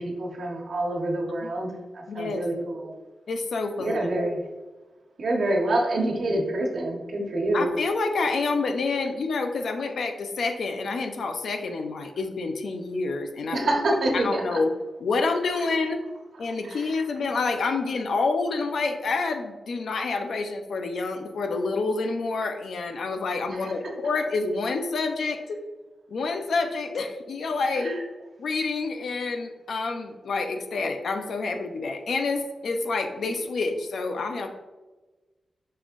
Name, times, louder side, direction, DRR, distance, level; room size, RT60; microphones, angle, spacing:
voice 1, 0.0-2.9 3.8-4.4 5.2-7.7 13.5-14.6 16.6-16.8 27.8-28.0, right 1 dB, 65° right, 1 dB, 1.3 m, -26 dB
voice 2, 2.1-2.5 3.3-4.1 7.5-13.6 14.1-14.7 15.0-16.0 16.4-25.6 26.1-28.0 28.4-34.6, left 3 dB, 75° left, 6 dB, 0.7 m, -28 dB
6.6 x 5.6 x 2.6 m, 1.2 s
wide cardioid pair, 115°, 0 cm